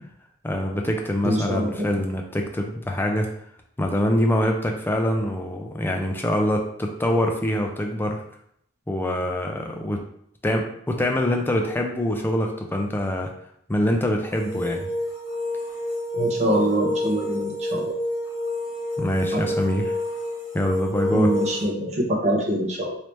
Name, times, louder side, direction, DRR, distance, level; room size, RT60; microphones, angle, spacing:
voice 1, 0.4-3.3 3.8-8.2 8.9-10.1 10.4-13.3 13.7-14.9 19.0-20.0 20.5-21.4, left 1 dB, 10° left, 2 dB, 0.3 m, -24 dB
voice 2, 1.2-1.9 16.2-17.9 19.3-19.5 21.1-22.9, right 1 dB, 30° right, -2 dB, 0.7 m, -24 dB
sound 1, 14.3-21.7, left 1 dB, 60° left, 1.5 m, -28 dB
3.3 x 2.7 x 3.0 m, 0.70 s
head